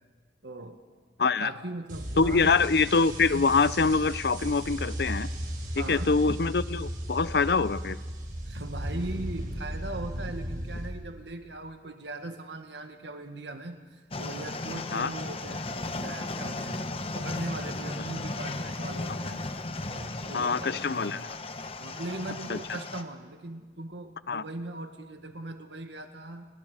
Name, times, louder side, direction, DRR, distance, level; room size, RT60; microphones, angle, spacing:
voice 1, 0.4-0.8 1.4-2.6 5.8-6.1 8.5-16.9 17.1-19.5 19.9-21.3 21.8-26.5, right 2 dB, 80° right, 6 dB, 1.8 m, -39 dB
voice 2, 1.2-1.5 2.2-5.3 5.8-8.0 14.9-15.1 20.3-21.2 22.5-22.6 24.3-24.4, left 4 dB, 65° left, 17 dB, 0.6 m, -24 dB
sound 1, 1.9-10.9, equal, 50° right, 5.0 m, -35 dB
sound 2, 14.1-23.0, left 2 dB, 30° left, 1.0 m, -35 dB
29.5 x 20.0 x 5.0 m, 1.4 s
head